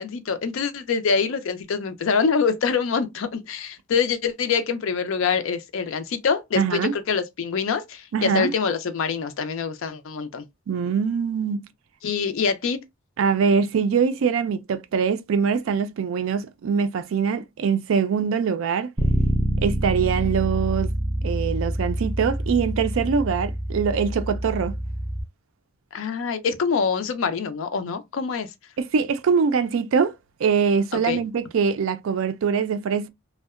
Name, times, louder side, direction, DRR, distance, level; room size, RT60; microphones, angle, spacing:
voice 1, 0.0-10.4 12.0-12.8 25.9-28.5 31.0-31.2, left 5 dB, 70° left, 0.4 m, -25 dB
voice 2, 6.6-7.0 8.1-8.5 10.7-11.6 13.2-18.9 19.6-20.9 21.2-24.8 28.8-30.1 30.4-33.1, right 6 dB, 70° right, 0.4 m, -23 dB
Bass guitar, 19.0-25.2, right 1 dB, 20° right, 0.5 m, -26 dB
2.7 x 2.1 x 2.3 m
head